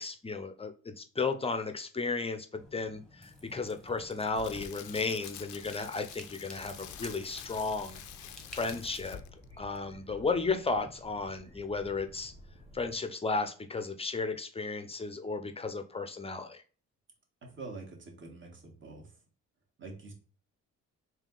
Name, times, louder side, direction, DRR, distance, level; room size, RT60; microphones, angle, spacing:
voice 1, 0.0-8.0 8.5-9.2 9.6-12.3 12.7-16.6, left 4 dB, 20° left, 8 dB, 0.5 m, -34 dB
sound 1, 2.6-9.0, left 1 dB, ahead, 1.0 m, -52 dB
Crackle, 4.0-9.5 9.8-9.9, left 11 dB, 75° left, 0.5 m, -47 dB
sound 2, 6.6-13.0, left 1 dB, 20° right, 1.2 m, -53 dB
voice 2, 17.4-19.2 19.8-20.1, right 3 dB, 40° right, 1 dB, 1.4 m, -45 dB
3.6 x 2.8 x 3.8 m, 0.40 s
cardioid pair, 90°, 30 cm